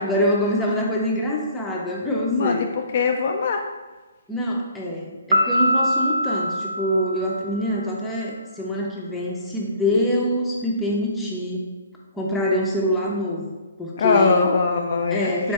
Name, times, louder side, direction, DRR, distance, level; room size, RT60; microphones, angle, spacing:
voice 1, 0.0-2.6 4.3-11.7 12.1-13.5 13.8-14.4 15.1-15.5, equal, 5° left, -3 dB, 0.6 m, -25 dB
voice 2, 2.3-3.6 14.0-15.3, left 4 dB, 50° left, 3 dB, 0.3 m, -21 dB
Piano, 5.3-7.9, equal, 60° right, 0.8 m, -23 dB
4.2 x 2.6 x 3.5 m, 1.2 s
hypercardioid pair, 145°, 0 cm